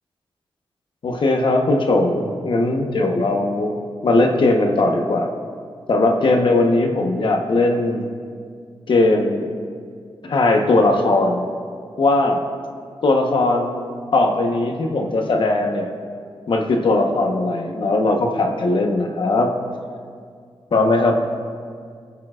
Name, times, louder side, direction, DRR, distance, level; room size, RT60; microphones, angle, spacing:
voice 1, 1.0-3.7 4.0-5.3 5.9-8.1 8.9-9.5 10.2-11.5 12.0-12.4 13.0-15.9 16.5-19.5 20.7-21.2, left 2 dB, 60° left, 3 dB, 1.1 m, -19 dB
22.0 x 7.3 x 2.5 m, 2.1 s
wide cardioid pair, 100°, 9 cm